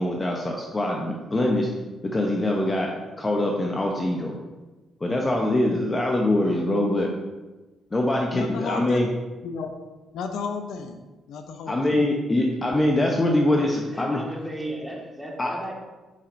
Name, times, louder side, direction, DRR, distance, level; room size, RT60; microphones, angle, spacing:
voice 1, 0.0-1.7 2.0-2.9 3.2-4.3 5.0-7.1 7.9-9.1 11.7-14.2 15.4-15.5, left 1 dB, 25° left, 0 dB, 0.7 m, -23 dB
voice 2, 8.3-9.0 9.4-9.8 10.1-11.0 11.3-12.0, left 5 dB, 80° left, 6 dB, 0.6 m, -33 dB
voice 3, 13.5-15.7, right 1 dB, 5° right, -2 dB, 1.7 m, -36 dB
7.4 x 5.6 x 2.6 m, 1.2 s
cardioid pair, 90°, 0 cm